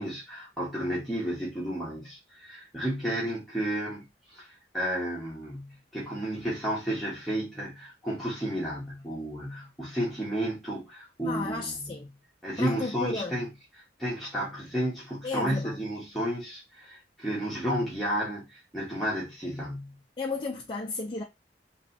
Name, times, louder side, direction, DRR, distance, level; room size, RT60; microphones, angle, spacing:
voice 1, 0.0-12.0 12.4-13.5 14.0-20.0, equal, ahead, 1.2 m, -32 dB
voice 2, 11.2-12.1 12.6-13.3 15.2-15.8 20.2-21.2, left 3 dB, 25° left, 0.5 m, -33 dB
3.1 x 3.0 x 2.6 m
head